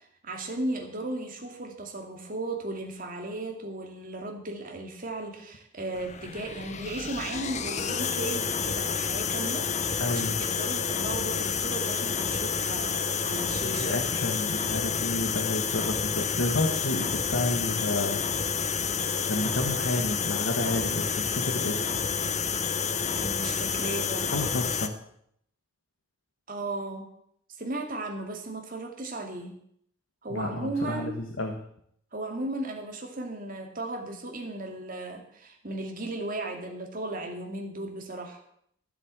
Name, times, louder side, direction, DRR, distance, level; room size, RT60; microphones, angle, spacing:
voice 1, 0.0-14.0 23.1-24.3 26.5-27.1 27.6-29.6 30.2-31.2 32.1-38.4, right 2 dB, 45° right, 3 dB, 2.4 m, -36 dB
sound 1, 5.9-24.9, left 6 dB, 35° left, 0.8 m, -29 dB
voice 2, 10.0-10.4 13.6-18.3 19.3-21.8 24.3-24.9 30.3-31.6, left 2 dB, 85° left, 4 dB, 1.5 m, -30 dB
13.5 x 7.7 x 7.7 m, 0.69 s
head